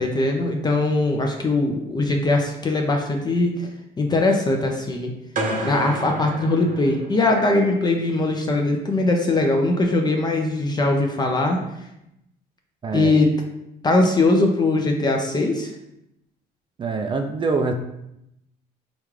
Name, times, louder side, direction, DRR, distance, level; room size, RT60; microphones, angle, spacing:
voice 1, 0.0-3.7 4.0-5.1 5.6-11.6 12.9-13.3 13.8-15.7, left 2 dB, 25° left, 2 dB, 0.5 m, -21 dB
sound 1, 5.4-7.5, right 1 dB, 55° right, 0.9 m, -30 dB
voice 2, 12.8-13.2 16.8-17.7, right 4 dB, 30° right, 5 dB, 0.4 m, -24 dB
5.0 x 2.3 x 3.1 m, 0.83 s
cardioid pair, 110°, 17 cm